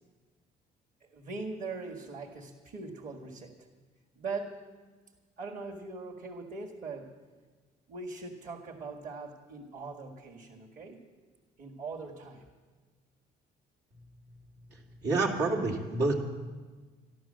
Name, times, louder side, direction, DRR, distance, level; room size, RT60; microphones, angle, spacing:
voice 1, 1.0-3.5 4.2-4.7 5.4-7.1 7.9-11.0 11.6-12.4, right 3 dB, 50° right, -2 dB, 2.0 m, -41 dB
voice 2, 14.7-16.2, right 3 dB, 85° right, 0 dB, 2.5 m, -29 dB
13.0 x 12.0 x 7.5 m, 1.4 s
cardioid pair, 110°, 17 cm